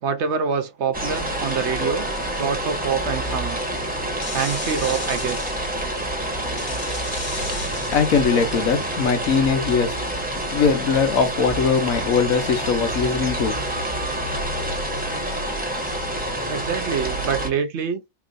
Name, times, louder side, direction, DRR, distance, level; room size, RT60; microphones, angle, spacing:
voice 1, 0.0-2.1 2.4-3.6 4.3-5.5 16.5-18.0, right 6 dB, 60° right, 0.9 m, -26 dB
sound 1, 0.9-17.5, right 1 dB, 5° right, 1.0 m, -27 dB
sound 2, 3.9-5.6 6.6-9.2, left 2 dB, 30° left, 0.8 m, -36 dB
voice 2, 7.9-10.0 10.5-13.9, left 5 dB, 75° left, 1.3 m, -21 dB
4.6 x 3.0 x 2.4 m
omnidirectional pair, 1.4 m